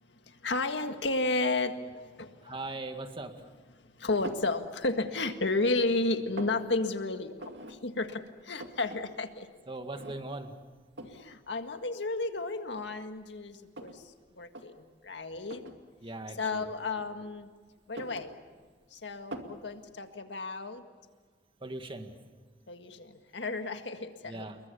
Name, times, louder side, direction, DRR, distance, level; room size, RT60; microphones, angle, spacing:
voice 1, 0.1-2.6 3.7-7.4 7.7-9.5 11.0-15.7 16.3-17.5 17.9-18.4 18.9-20.8 22.7-24.5, left 2 dB, 90° left, 7 dB, 1.8 m, -33 dB
voice 2, 2.4-3.4 9.7-10.5 16.0-16.6 21.6-22.1 24.3-24.6, right 2 dB, 30° right, 6 dB, 1.9 m, -39 dB
sound 1, 4.2-4.6 5.1-5.7 6.0-6.6 7.4-7.8 8.1-8.2 8.4-9.0 9.3-9.4 10.0-10.5 11.0-11.2 12.1-12.2 12.7-14.0 14.4-14.7 15.4-15.8 16.8-17.4 17.8-18.8 19.3-19.6, right 1 dB, 85° right, 2.2 m, -43 dB
28.5 x 22.5 x 7.0 m, 1.4 s
head